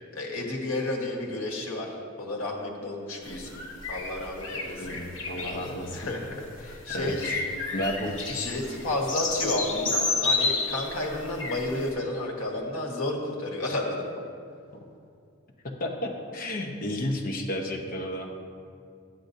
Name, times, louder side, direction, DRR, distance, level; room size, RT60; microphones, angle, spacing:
voice 1, 0.1-3.6 3.9-5.0 5.9-7.3 8.3-14.2, left 2 dB, 85° left, -1 dB, 1.4 m, -31 dB
sound 1, 3.3-11.9, left 3 dB, 65° left, 1.0 m, -31 dB
voice 2, 4.8-6.0 6.9-7.4 7.7-8.1 15.8-18.3, left 1 dB, 40° left, 1 dB, 0.8 m, -32 dB
11.5 x 7.7 x 2.7 m, 2.4 s
head